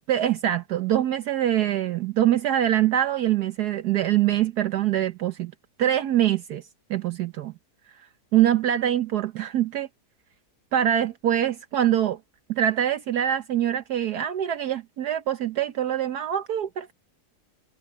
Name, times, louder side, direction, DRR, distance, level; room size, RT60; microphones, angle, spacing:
voice 1, 0.1-5.5 5.8-6.6 6.9-7.5 8.3-9.9 10.7-12.2 12.5-16.9, right 11 dB, 70° right, 1.4 m, -24 dB
omnidirectional pair, 1.8 m